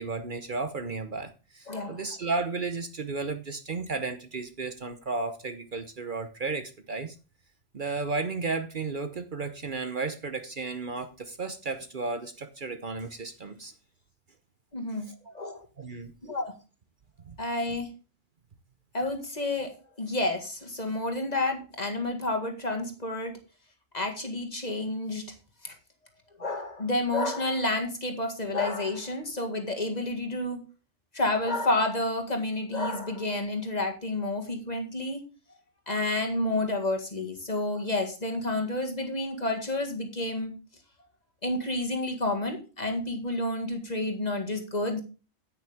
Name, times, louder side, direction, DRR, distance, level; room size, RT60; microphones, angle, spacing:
voice 1, 0.0-7.2 7.7-13.7 15.0-15.3 15.8-16.1 17.2-17.4, right 3 dB, 50° right, 9 dB, 1.0 m, -33 dB
voice 2, 1.7-2.0 14.7-15.1 15.3-15.6 16.2-16.5 17.4-17.9 18.9-19.7 20.0-23.4 23.9-25.3 25.6-25.7 26.4-30.6 31.1-35.2 35.9-40.5 41.4-45.0, left 2 dB, 35° left, 4 dB, 2.0 m, -30 dB
9.6 x 9.1 x 3.5 m, 0.33 s
omnidirectional pair, 1.2 m